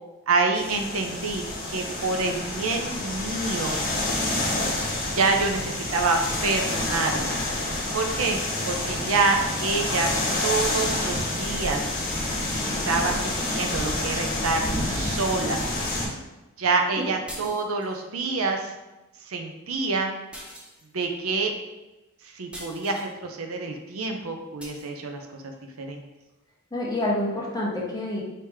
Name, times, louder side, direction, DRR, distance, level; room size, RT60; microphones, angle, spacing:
voice 1, 0.3-3.8 5.1-7.4 7.9-8.4 8.6-10.1 10.4-11.9 12.6-15.6 16.6-18.7 19.3-20.1 20.9-21.5 22.3-25.4 25.8-26.1, right 3 dB, 75° right, 4 dB, 0.6 m, -27 dB
sound 1, 0.5-16.1, left 1 dB, 40° left, 1.3 m, -28 dB
voice 2, 12.6-13.0 16.9-17.0 26.7-28.2, left 1 dB, 20° left, -4 dB, 0.9 m, -28 dB
sound 2, 17.3-18.0 20.3-21.1 22.5-23.1 24.6-24.9, equal, 5° right, 0.6 m, -42 dB
4.8 x 2.9 x 3.5 m, 1.0 s
head